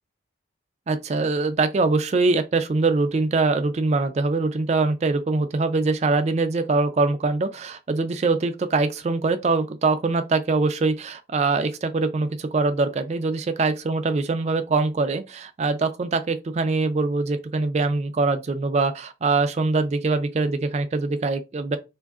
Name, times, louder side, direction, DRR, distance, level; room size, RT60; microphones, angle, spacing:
voice 1, 0.9-21.8, right 3 dB, 35° right, 0.3 m, -23 dB
3.5 x 2.5 x 2.3 m
head